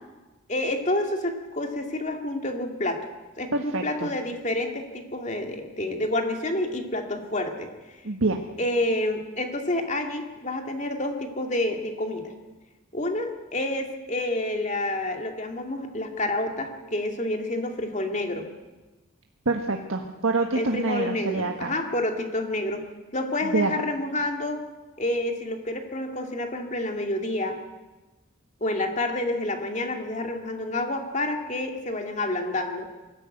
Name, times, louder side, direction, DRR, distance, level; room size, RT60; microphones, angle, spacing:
voice 1, 0.5-3.0 3.4-7.7 8.6-12.3 12.9-18.5 20.5-22.8 23.1-24.6 25.0-27.6 28.6-32.9, left 1 dB, 35° left, 4 dB, 2.3 m, -28 dB
voice 2, 3.5-4.1 8.0-8.4 19.4-21.7 23.4-23.7, right 3 dB, 70° right, 3 dB, 1.5 m, -26 dB
23.0 x 14.0 x 9.1 m, 1.2 s
head